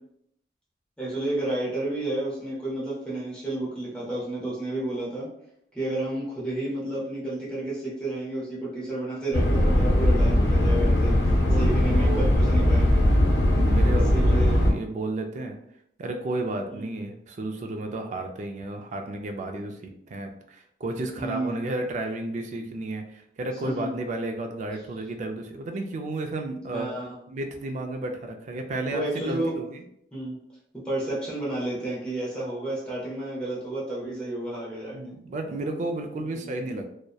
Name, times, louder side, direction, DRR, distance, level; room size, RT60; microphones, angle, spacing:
voice 1, 1.0-5.3 5.7-13.0 13.9-14.6 16.7-16.9 21.2-21.7 23.6-23.9 26.7-27.1 28.9-29.6 30.1-30.4 30.7-35.0 36.4-36.5, right 1 dB, 5° left, -7 dB, 0.6 m, -31 dB
sound 1, 9.3-14.7, left 1 dB, 75° left, 0.6 m, -20 dB
voice 2, 11.4-12.4 13.6-15.6 16.0-26.9 27.3-29.8 34.9-36.9, right 2 dB, 40° right, 4 dB, 0.3 m, -32 dB
2.7 x 2.0 x 2.2 m, 0.74 s
head